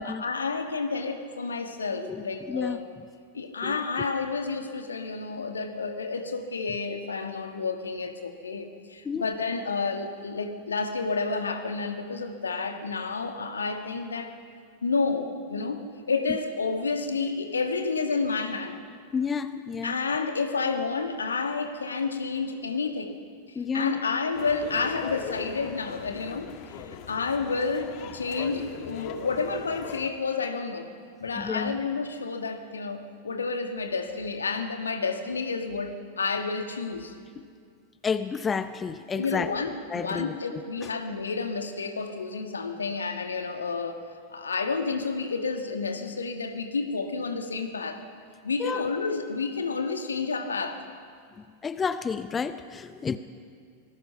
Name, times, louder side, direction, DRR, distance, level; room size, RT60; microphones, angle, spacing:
voice 1, 0.0-2.8 3.3-14.4 14.8-18.8 19.8-23.2 23.5-30.9 31.2-37.1 39.1-44.0 44.3-48.0 48.4-50.8, left 4 dB, 75° left, 6 dB, 1.8 m, -30 dB
voice 2, 2.0-2.8 3.6-3.8 9.0-9.3 16.3-16.4 19.1-20.0 23.5-24.1 31.4-31.8 37.4-37.5 38.0-39.5 39.9-40.9 48.6-48.9 51.4-53.2, left 6 dB, 20° left, 13 dB, 0.7 m, -31 dB
sound 1, 24.3-30.1, left 7 dB, 40° left, 1.5 m, -40 dB
26.0 x 20.0 x 5.7 m, 2.1 s
figure-of-eight pair, 90°, 0 cm